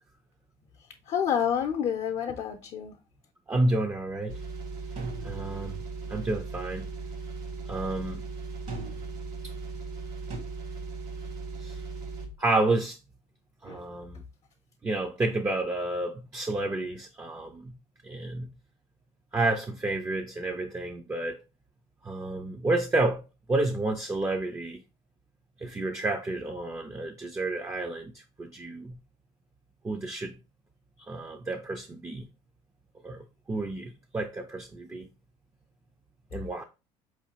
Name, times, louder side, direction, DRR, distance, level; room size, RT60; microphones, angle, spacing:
voice 1, 1.1-3.0 13.7-13.9, left 8 dB, 50° left, 0.6 m, -29 dB
voice 2, 3.5-4.4 5.2-5.8 6.1-6.9 7.7-8.2 11.6-11.8 12.4-13.0 13.6-14.2 14.8-17.7 18.0-18.5 19.3-21.4 22.0-23.2 23.5-24.8 25.6-29.0 29.8-30.4 31.1-32.3 33.0-35.1 36.3-36.6, right 2 dB, 20° right, 0.5 m, -30 dB
sound 1, 4.3-12.3, right 4 dB, 90° right, 1.2 m, -38 dB
sound 2, 5.0-5.9 8.7-9.3 10.3-10.4, right 2 dB, 60° right, 1.2 m, -39 dB
4.3 x 3.1 x 2.8 m
supercardioid pair, 95°, 14 cm